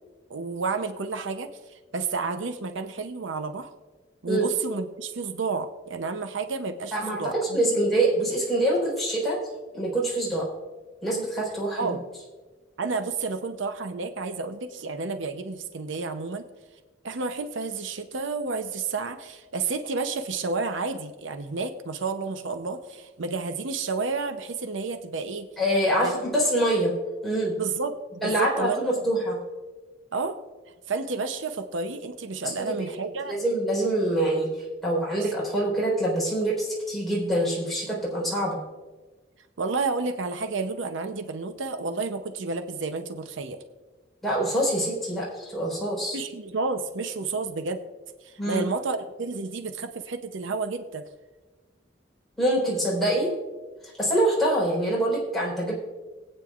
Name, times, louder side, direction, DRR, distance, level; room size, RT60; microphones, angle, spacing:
voice 1, 0.3-3.7 4.2-7.6 11.8-12.0 12.8-16.4 17.0-25.5 26.0-26.2 27.6-28.8 30.1-30.4 30.9-33.4 39.6-43.6 46.1-47.8 48.2-51.0, right 4 dB, 85° right, 8 dB, 0.7 m, -31 dB
voice 2, 6.9-9.4 9.7-10.5 11.0-11.9 25.6-26.9 27.2-27.5 28.2-29.4 32.4-32.8 33.3-34.5 34.8-38.6 44.2-46.2 48.4-48.6 52.4-53.3 54.0-55.7, right 1 dB, ahead, -5 dB, 4.0 m, -25 dB
21.5 x 8.9 x 2.4 m, 1.3 s
head